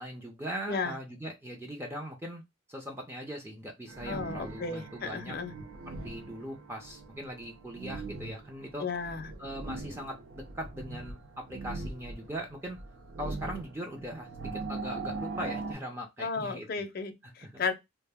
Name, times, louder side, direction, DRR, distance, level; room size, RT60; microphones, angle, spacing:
voice 1, 0.0-2.4 2.7-5.4 6.0-8.9 9.4-12.8 13.2-16.7 17.2-17.6, equal, 10° right, 0.4 m, -40 dB
sound 1, 3.9-15.7, right 3 dB, 70° right, 0.5 m, -41 dB
voice 2, 4.0-5.5 8.8-9.3 16.2-17.7, left 4 dB, 45° left, 0.5 m, -34 dB
2.4 x 2.1 x 3.4 m
head